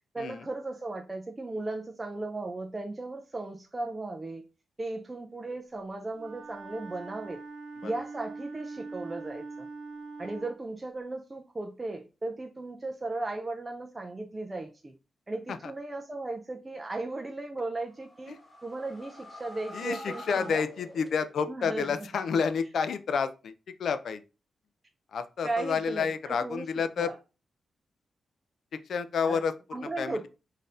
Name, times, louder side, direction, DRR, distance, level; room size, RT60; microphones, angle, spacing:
voice 1, 0.1-4.4 4.8-7.4 7.8-9.7 10.2-14.9 15.3-20.6 21.5-22.1 25.4-26.7 27.0-27.2 29.3-29.4 29.7-30.2, right 2 dB, 20° right, 0.5 m, -36 dB
Wind instrument woodwind instrument, 6.1-10.6, right 3 dB, 60° right, 0.7 m, -42 dB
sound 1, 17.8-21.6, left 1 dB, 25° left, 1.4 m, -46 dB
voice 2, 19.7-23.5 23.8-24.2 25.1-27.1 28.7-29.5 29.8-30.3, left 6 dB, 70° left, 0.4 m, -30 dB
3.9 x 2.6 x 3.7 m
cardioid pair, 105°, 0 cm